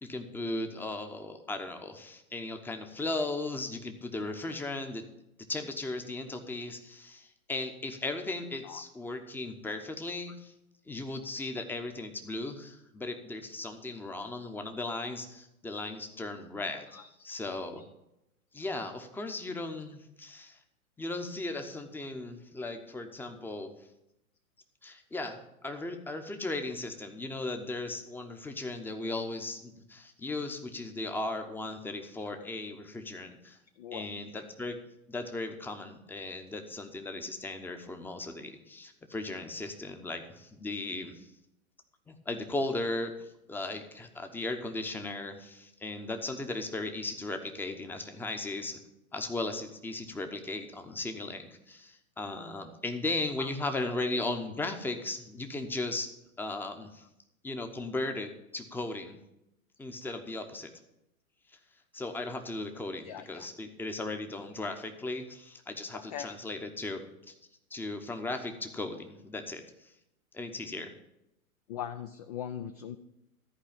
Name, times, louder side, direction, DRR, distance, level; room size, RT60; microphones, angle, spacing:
voice 1, 0.0-5.0 5.5-10.5 10.9-16.9 17.2-17.8 18.5-20.6 21.0-23.7 24.8-33.6 33.9-34.8 35.1-41.3 42.1-48.8 49.1-56.1 56.4-57.0 57.4-59.2 59.8-60.7 61.9-67.3 67.7-69.9 70.3-70.9, left 2 dB, 5° left, 6 dB, 0.9 m, -37 dB
voice 2, 33.8-34.1 53.4-53.5 63.1-63.5 65.9-66.3 71.7-73.0, left 9 dB, 30° left, 8 dB, 0.4 m, -40 dB
14.0 x 4.8 x 8.7 m, 0.87 s
figure-of-eight pair, 110°, 43 cm